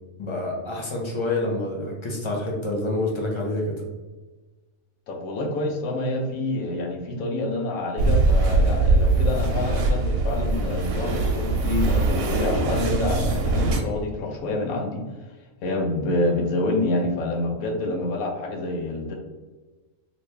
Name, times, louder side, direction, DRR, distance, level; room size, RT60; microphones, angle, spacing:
voice 1, 0.2-3.8, left 2 dB, 35° left, -2 dB, 0.5 m, -27 dB
voice 2, 5.1-15.0 15.6-19.2, left 2 dB, 85° left, 2 dB, 1.1 m, -27 dB
sound 1, 8.0-13.8, right 2 dB, 90° right, 1.0 m, -22 dB
2.9 x 2.6 x 3.3 m, 1.3 s
omnidirectional pair, 1.4 m